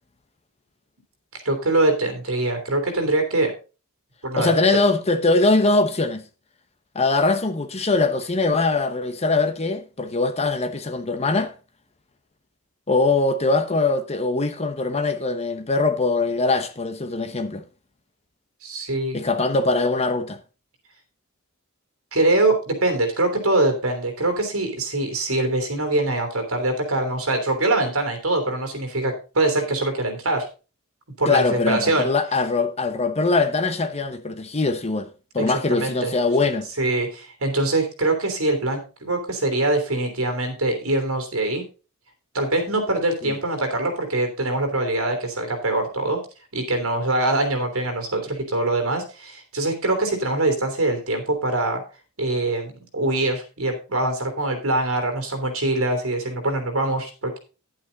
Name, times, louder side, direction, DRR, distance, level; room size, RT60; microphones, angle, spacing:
voice 1, 1.3-3.5 4.2-4.5 18.6-19.2 22.1-30.4 31.2-32.1 35.4-36.1 36.8-41.6 42.3-46.2 46.5-51.8 52.2-57.4, right 2 dB, 70° right, 3.1 m, -23 dB
voice 2, 4.4-6.2 6.9-11.5 12.9-17.6 19.1-20.4 31.3-35.1 35.3-36.7 43.2-43.3, left 3 dB, 30° left, 0.9 m, -22 dB
10.5 x 8.7 x 4.0 m
head